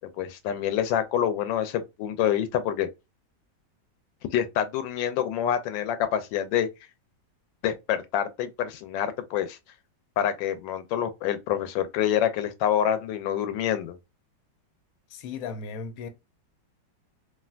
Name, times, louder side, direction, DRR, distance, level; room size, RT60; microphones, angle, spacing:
voice 1, 0.2-2.9 4.3-6.7 7.6-9.6 10.2-14.0, left 10 dB, 90° left, 1.3 m, -27 dB
voice 2, 15.1-16.1, left 5 dB, 70° left, 0.9 m, -36 dB
3.3 x 2.4 x 2.3 m
omnidirectional pair, 2.0 m